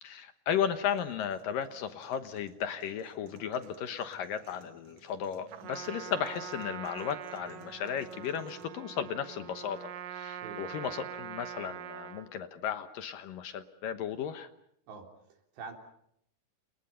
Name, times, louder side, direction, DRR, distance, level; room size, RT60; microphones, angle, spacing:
voice 1, 0.0-14.5, left 8 dB, 65° left, 9 dB, 2.4 m, -35 dB
sound 1, 0.6-8.6, right 3 dB, 45° right, 3.4 m, -59 dB
Trumpet, 5.5-12.3, right 9 dB, 65° right, 2.6 m, -43 dB
voice 2, 14.9-15.7, right 4 dB, 90° right, 4 dB, 5.8 m, -45 dB
29.5 x 29.0 x 5.6 m, 0.74 s
omnidirectional pair, 4.8 m